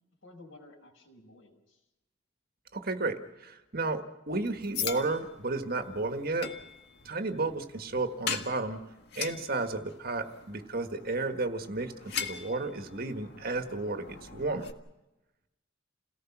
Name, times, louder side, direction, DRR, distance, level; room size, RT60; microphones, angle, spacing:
voice 1, 0.2-1.8, left 2 dB, 75° left, -2 dB, 5.4 m, -53 dB
voice 2, 2.7-6.5 7.0-8.8 9.1-14.7, right 3 dB, 50° right, 7 dB, 1.6 m, -33 dB
sound 1, 4.3-14.7, left 7 dB, 55° left, 1.7 m, -41 dB
29.5 x 18.0 x 6.1 m, 0.99 s
head